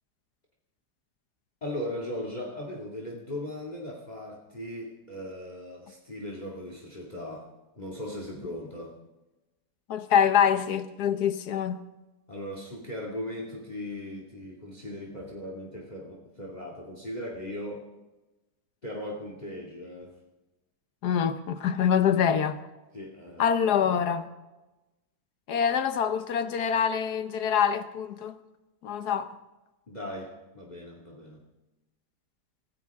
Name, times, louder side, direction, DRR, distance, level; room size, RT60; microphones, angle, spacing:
voice 1, 1.6-7.5 7.8-9.0 12.3-17.9 18.8-20.1 22.9-24.0 29.9-31.4, left 1 dB, 25° left, 2.3 m, -38 dB
voice 2, 9.9-11.8 21.0-22.6 23.4-24.3 25.5-28.3 28.8-29.3, left 8 dB, 80° left, 1.5 m, -25 dB
26.0 x 15.0 x 3.6 m
omnidirectional pair, 1.7 m